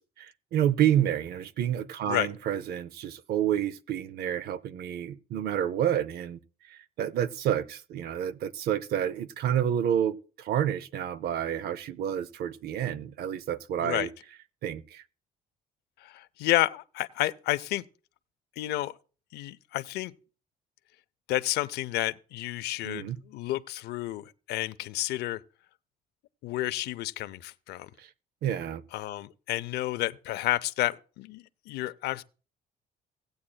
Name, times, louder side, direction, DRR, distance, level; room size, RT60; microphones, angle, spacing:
voice 1, 0.0-6.4 6.7-14.1 14.6-15.0 22.8-23.2 28.0-28.1 28.4-28.8, right 10 dB, 65° right, 0.6 m, -29 dB
voice 2, 16.0-17.9 18.6-19.0 19.3-20.1 21.3-25.4 26.4-27.9 28.9-32.2, left 15 dB, 75° left, 0.5 m, -30 dB
17.0 x 8.6 x 2.3 m
cardioid pair, 110°, 17 cm